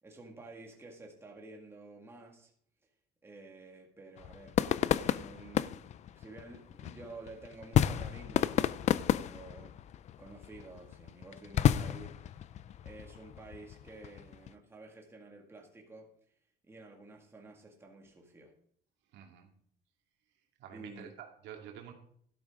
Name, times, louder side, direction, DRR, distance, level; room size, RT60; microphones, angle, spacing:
voice 1, 0.0-2.5 3.2-4.6 4.9-8.7 9.0-12.5 12.8-16.1 16.6-18.5 20.7-21.1, right 2 dB, 15° right, 0 dB, 2.1 m, -51 dB
sound 1, 4.2-14.5, left 10 dB, 40° left, 0.4 m, -32 dB
voice 2, 19.1-19.5 20.6-21.9, right 9 dB, 75° right, 2 dB, 2.4 m, -48 dB
12.0 x 12.0 x 3.7 m, 0.63 s
cardioid pair, 150°, 18 cm